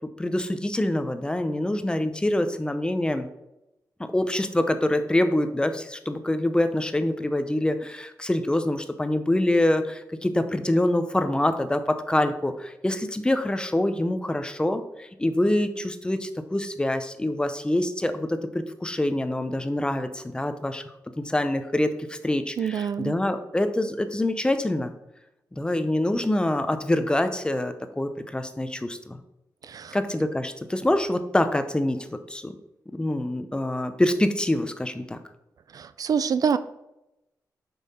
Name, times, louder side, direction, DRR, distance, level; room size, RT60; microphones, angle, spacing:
voice 1, 0.2-3.3 4.0-20.8 21.2-24.9 25.5-29.2 29.9-32.6 32.9-35.2, left 1 dB, 15° left, 9 dB, 0.6 m, -25 dB
voice 2, 22.6-23.1 29.6-30.0 35.7-36.6, right 7 dB, 60° right, 13 dB, 0.4 m, -26 dB
7.2 x 5.6 x 4.2 m, 0.90 s
wide cardioid pair, 115°, 7 cm